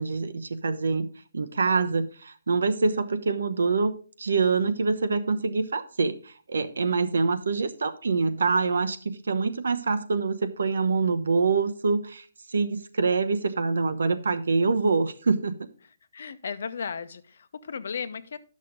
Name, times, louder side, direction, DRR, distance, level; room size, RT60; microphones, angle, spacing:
voice 1, 0.0-3.9 4.2-15.6, right 4 dB, 80° right, 0.9 m, -25 dB
voice 2, 16.1-18.4, left 6 dB, 55° left, 0.7 m, -35 dB
11.0 x 6.3 x 3.8 m
hypercardioid pair, 170°, 0 cm